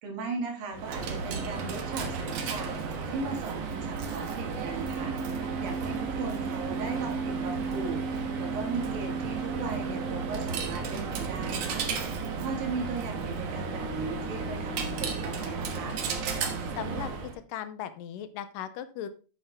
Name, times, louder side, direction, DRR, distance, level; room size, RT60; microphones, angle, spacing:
voice 1, 0.0-2.7 3.1-5.2 5.6-8.0 8.4-11.9 12.4-16.0, right 4 dB, 80° right, 3 dB, 3.7 m, -37 dB
Coin (dropping), 0.7-17.4, right 5 dB, 60° right, 1.9 m, -33 dB
voice 2, 16.8-17.1 17.5-19.1, left 10 dB, 80° left, 12 dB, 2.3 m, -37 dB
8.6 x 7.3 x 3.4 m, 0.35 s
omnidirectional pair, 4.0 m